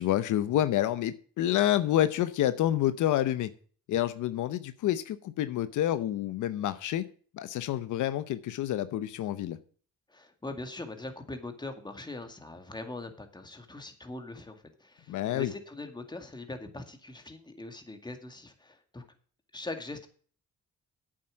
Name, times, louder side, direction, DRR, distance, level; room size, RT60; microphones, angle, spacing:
voice 1, 0.0-3.5 3.9-7.0 7.3-9.6 15.1-15.5, left 12 dB, 80° left, 13 dB, 0.8 m, -28 dB
voice 2, 10.1-19.0 19.5-20.1, left 2 dB, 15° left, 7 dB, 2.1 m, -41 dB
8.8 x 7.6 x 6.3 m, 0.44 s
cardioid pair, 90°, 30 cm